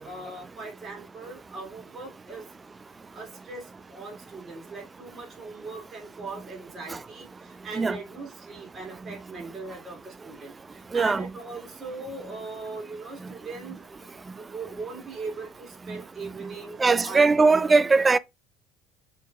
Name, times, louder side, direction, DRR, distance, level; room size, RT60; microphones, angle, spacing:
voice 1, 0.0-2.5 3.1-17.5 17.8-18.0, right 3 dB, 40° right, 2.9 m, -40 dB
voice 2, 10.9-11.2 16.8-18.2, right 4 dB, 25° right, 0.3 m, -20 dB
6.5 x 3.4 x 2.3 m
supercardioid pair, 85°, 0 cm